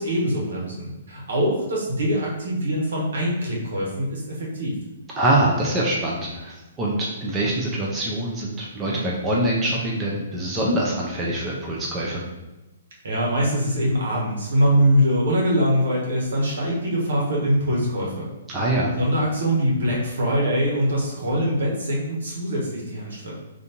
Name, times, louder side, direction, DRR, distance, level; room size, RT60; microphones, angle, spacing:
voice 1, 0.0-4.8 13.0-18.3 19.0-23.3, equal, 75° right, -3 dB, 1.4 m, -23 dB
voice 2, 5.2-12.2 18.5-18.9, right 1 dB, 15° right, -4 dB, 0.7 m, -24 dB
4.7 x 2.7 x 2.9 m, 1.0 s
hypercardioid pair, 140°, 0 cm